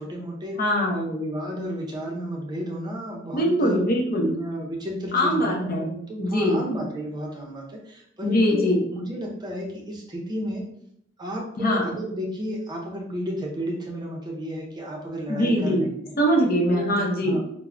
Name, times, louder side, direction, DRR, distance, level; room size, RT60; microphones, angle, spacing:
voice 1, 0.0-0.6 0.9-3.8 4.2-10.7 11.2-16.2 16.7-17.4, equal, 20° right, -1 dB, 0.5 m, -32 dB
voice 2, 0.6-1.1 3.3-4.4 5.1-5.9 6.2-6.6 8.2-8.8 11.6-11.9 15.3-15.9 16.2-17.4, equal, 50° left, 0 dB, 0.7 m, -22 dB
4.4 x 2.0 x 2.4 m, 0.71 s
head